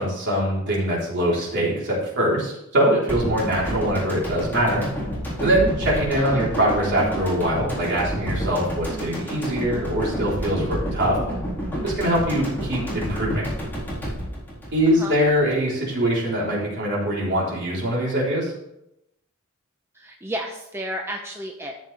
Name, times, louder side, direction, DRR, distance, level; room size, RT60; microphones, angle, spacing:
voice 1, 0.0-4.9 5.4-11.2 11.8-13.5 14.7-18.5, equal, 55° right, -5 dB, 4.0 m, -23 dB
sound 1, 3.1-15.4 15.7-15.8, equal, 10° left, 4.3 m, -29 dB
voice 2, 6.2-6.5 15.0-15.2 19.9-21.8, equal, 10° right, 1 dB, 0.8 m, -32 dB
13.5 x 7.2 x 3.5 m, 0.84 s
head